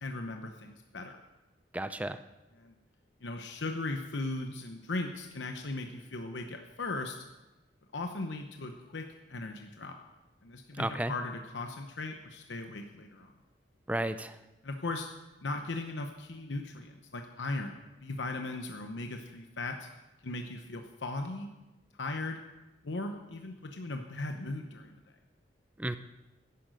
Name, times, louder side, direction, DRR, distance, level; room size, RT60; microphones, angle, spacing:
voice 1, 0.0-1.2 2.6-2.7 3.2-7.2 7.9-10.0 10.4-13.3 14.6-15.1 15.4-19.9 20.2-21.5 21.9-22.4 22.8-24.9, left 2 dB, 85° left, 5 dB, 0.9 m, -38 dB
voice 2, 1.7-2.2 10.8-11.1 13.9-14.3 25.8-26.0, right 1 dB, 10° right, 11 dB, 0.4 m, -32 dB
11.0 x 10.5 x 6.3 m, 1.0 s
head